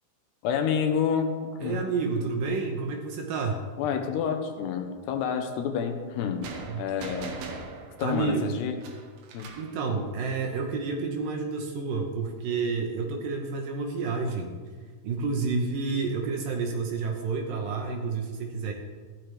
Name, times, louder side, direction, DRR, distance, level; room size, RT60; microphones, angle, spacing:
voice 1, 0.4-1.8 3.8-6.5 6.8-7.4 8.0-8.8 9.3-9.5, left 7 dB, 85° left, 6 dB, 3.1 m, -28 dB
voice 2, 1.6-3.6 6.7-6.9 8.0-8.5 9.6-14.5 15.0-18.7, right 4 dB, 70° right, 3 dB, 2.5 m, -29 dB
sound 1, 6.4-9.8, right 4 dB, 85° right, 3.2 m, -41 dB
15.0 x 12.0 x 3.4 m, 1.6 s
omnidirectional pair, 4.7 m